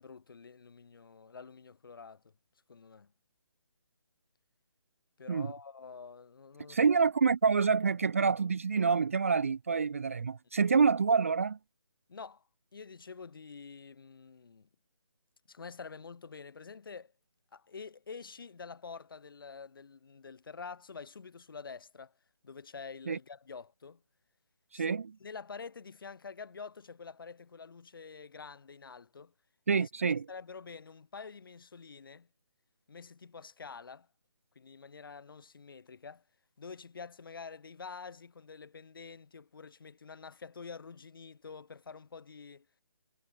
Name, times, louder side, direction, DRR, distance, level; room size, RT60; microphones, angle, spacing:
voice 1, 0.0-2.3 2.7-3.1 5.2-7.0 12.1-12.4 12.7-14.7 15.5-17.1 17.5-22.1 22.4-24.0 24.7-29.3 29.7-29.9 30.3-32.3 32.9-34.1 34.5-36.2 36.6-42.7, left 5 dB, 50° left, 7.7 m, -47 dB
voice 2, 6.7-11.6 23.1-23.2 24.7-25.1 29.7-30.2, right 5 dB, 30° right, 0.5 m, -27 dB
hypercardioid pair, 170°, 15 cm